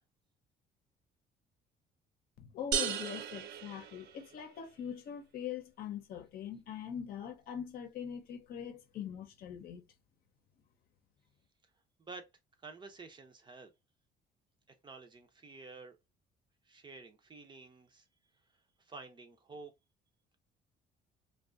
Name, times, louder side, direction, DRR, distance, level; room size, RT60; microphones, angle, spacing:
voice 1, 2.4-9.8, left 8 dB, 65° left, 0.7 m, -42 dB
sound 1, 2.7-4.6, right 8 dB, 75° right, 0.5 m, -36 dB
voice 2, 12.6-13.7 14.8-16.0 16.7-18.0 18.8-19.7, right 3 dB, 25° right, 0.6 m, -50 dB
2.6 x 2.3 x 2.5 m
cardioid pair, 110°, 17 cm